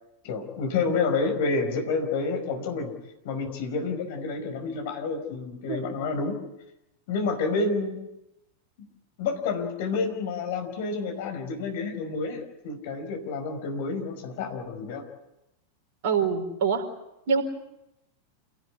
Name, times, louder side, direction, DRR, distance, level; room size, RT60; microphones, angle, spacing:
voice 1, 0.2-2.9 3.2-6.4 7.1-8.0 9.2-15.0, left 4 dB, 50° left, 5 dB, 5.3 m, -29 dB
voice 2, 16.0-16.8 17.3-17.4, right 6 dB, 50° right, 6 dB, 4.6 m, -24 dB
28.5 x 18.5 x 9.8 m, 0.89 s
figure-of-eight pair, 90°, 0 cm